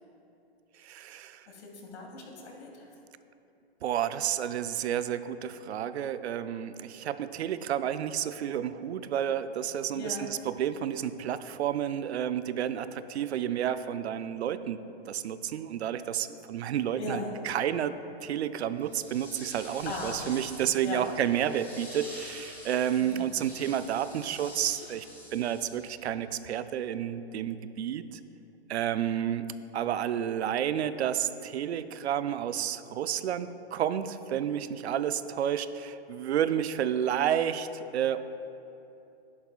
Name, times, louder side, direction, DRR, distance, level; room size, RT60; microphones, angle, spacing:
voice 1, 0.8-1.5 3.8-14.8 15.1-17.9 18.2-25.1 25.3-28.2 28.7-29.5 29.7-38.2, right 10 dB, 80° right, 12 dB, 0.6 m, -30 dB
voice 2, 1.5-2.9 9.9-10.3 16.9-17.3 19.8-20.4 20.8-21.1 23.0-23.3, left 2 dB, 85° left, 0 dB, 2.4 m, -38 dB
sound 1, 18.8-26.1, equal, 5° left, 1.7 m, -47 dB
12.0 x 11.0 x 2.4 m, 2.8 s
hypercardioid pair, 145°, 33 cm